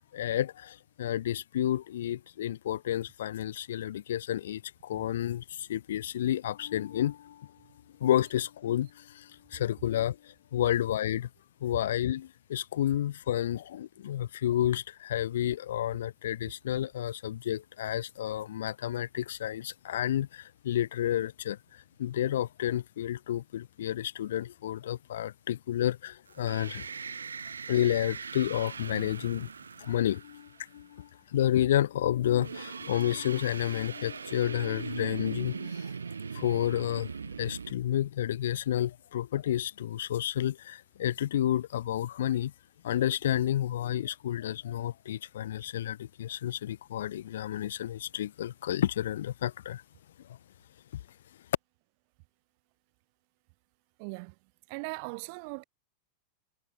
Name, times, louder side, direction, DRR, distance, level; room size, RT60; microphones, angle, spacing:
voice 1, 0.1-7.5 8.0-11.3 11.6-26.8 27.7-29.5 29.8-35.9 36.3-37.1 37.4-42.5 42.8-49.8, left 11 dB, 60° left, 0.6 m, -30 dB
sound 1, 26.3-30.7 32.2-37.7, right 5 dB, 75° right, 0.6 m, -40 dB
voice 2, 54.0-54.4 54.7-55.6, right 35 dB, 45° right, 1.8 m, -39 dB
figure-of-eight pair, 90°, 0 cm